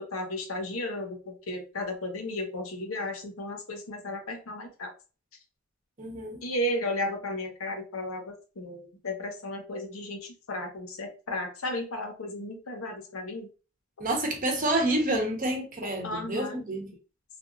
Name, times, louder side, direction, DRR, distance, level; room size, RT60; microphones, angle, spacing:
voice 1, 0.0-4.9 6.4-13.5 15.8-16.6, left 1 dB, 75° left, 0.8 m, -34 dB
voice 2, 6.0-6.4 14.0-16.9, right 1 dB, 40° right, 0.9 m, -28 dB
3.4 x 2.5 x 2.4 m
head